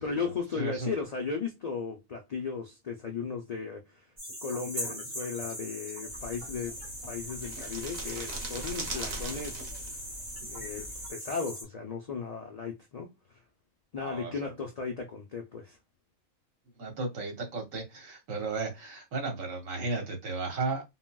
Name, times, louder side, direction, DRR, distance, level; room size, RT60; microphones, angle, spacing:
voice 1, 0.0-4.0 4.4-6.8 7.0-9.7 10.5-13.1 13.9-15.8, left 5 dB, 85° left, 0.3 m, -36 dB
voice 2, 0.6-0.9 14.0-14.5 16.8-20.8, right 3 dB, 85° right, 1.4 m, -34 dB
sound 1, 4.2-11.6, equal, 25° right, 1.0 m, -40 dB
sound 2, 6.1-11.1, right 2 dB, 45° right, 0.5 m, -41 dB
3.8 x 2.0 x 2.2 m
omnidirectional pair, 1.3 m